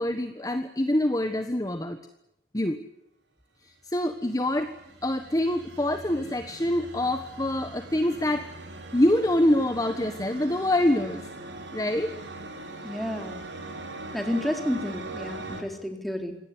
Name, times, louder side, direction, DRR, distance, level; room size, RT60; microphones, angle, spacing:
voice 1, 0.0-2.0 2.5-2.8 3.8-4.7 5.0-8.5 8.9-11.3 11.7-12.1 13.2-13.3, left 1 dB, 20° left, 7 dB, 1.4 m, -25 dB
sound 1, 4.0-15.6, right 2 dB, 85° right, 5.2 m, -41 dB
voice 2, 12.8-13.5 14.1-16.4, left 1 dB, ahead, 4 dB, 3.8 m, -31 dB
25.5 x 18.0 x 9.7 m, 0.82 s
head